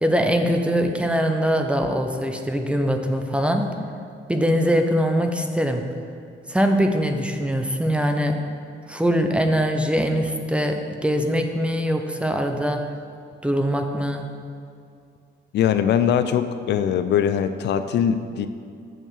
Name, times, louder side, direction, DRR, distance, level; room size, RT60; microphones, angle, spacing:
voice 1, 0.0-3.7 4.3-5.8 6.5-8.4 8.9-12.8 13.4-14.3, equal, 5° right, 4 dB, 0.5 m, -22 dB
voice 2, 15.5-18.5, left 8 dB, 60° left, 11 dB, 0.4 m, -21 dB
8.1 x 4.7 x 7.1 m, 2.4 s
cardioid pair, 170°, 20 cm